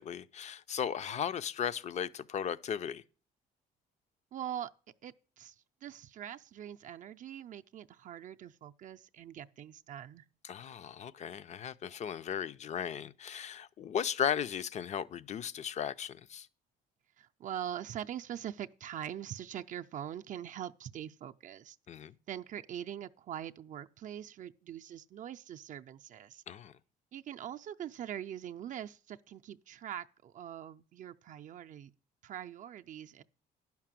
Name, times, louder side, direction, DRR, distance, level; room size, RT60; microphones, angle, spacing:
voice 1, 0.0-3.0 10.4-16.5 21.9-22.2 26.5-26.7, left 8 dB, 45° left, 0.5 m, -36 dB
voice 2, 4.3-4.7 5.0-5.6 5.8-10.2 17.2-21.8 22.3-26.4 27.1-31.9 32.2-33.2, right 10 dB, 50° right, 0.5 m, -43 dB
10.5 x 5.9 x 7.5 m
cardioid pair, 110°, 17 cm